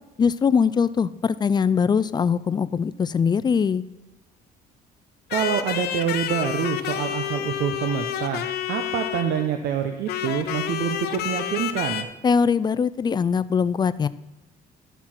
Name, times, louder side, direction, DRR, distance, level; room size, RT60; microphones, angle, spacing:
voice 1, 0.2-3.8 12.2-14.1, left 6 dB, 25° left, 16 dB, 0.4 m, -21 dB
sound 1, 5.3-9.6 10.1-12.0, left 10 dB, 70° left, 0.8 m, -29 dB
voice 2, 5.3-12.1, right 8 dB, 70° right, 7 dB, 0.8 m, -26 dB
13.0 x 4.6 x 5.8 m, 1.0 s
cardioid pair, 110°, 17 cm